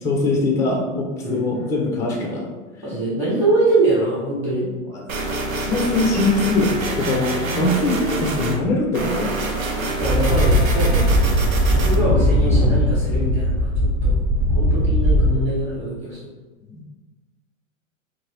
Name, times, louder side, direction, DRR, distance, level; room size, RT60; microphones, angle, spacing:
voice 1, 0.0-2.5 4.9-5.0 5.6-9.3 11.9-12.2 14.6-14.8 16.7-16.8, left 2 dB, 10° left, 0 dB, 0.3 m, -22 dB
voice 2, 1.2-1.5 2.8-4.7 10.0-14.2 14.5-16.2, right 2 dB, 10° right, -10 dB, 1.1 m, -23 dB
sound 1, 5.1-8.6 8.9-11.9, right 2 dB, 90° right, 0.7 m, -26 dB
sound 2, 10.0-15.3, equal, 30° right, 0.8 m, -18 dB
2.8 x 2.6 x 3.2 m, 1.2 s
hypercardioid pair, 110°, 40 cm